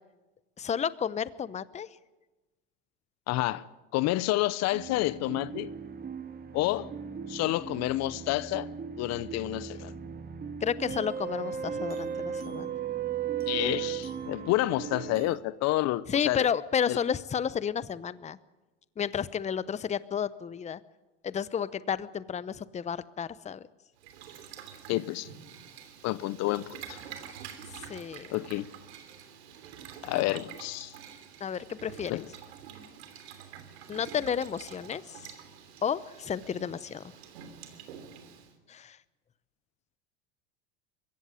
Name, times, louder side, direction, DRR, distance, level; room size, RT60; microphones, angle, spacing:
voice 1, 0.6-1.9 10.6-12.7 16.1-18.4 19.0-20.8 21.2-23.6 27.8-28.3 31.4-32.2 33.9-35.2 35.8-37.0 38.7-39.0, left 7 dB, 20° left, 0.8 m, -31 dB
voice 2, 3.3-3.7 3.9-5.7 6.5-6.9 7.3-8.7 9.0-9.9 13.5-16.5 16.9-17.0 24.9-25.3 26.0-27.0 28.3-28.7 30.0-30.9 32.1-32.3, left 17 dB, 55° left, 0.8 m, -29 dB
sound 1, 4.7-15.4, right 7 dB, 30° right, 1.8 m, -37 dB
Boiling, 24.0-38.5, right 8 dB, 80° right, 3.1 m, -47 dB
22.0 x 16.0 x 9.8 m
hypercardioid pair, 90°, 32 cm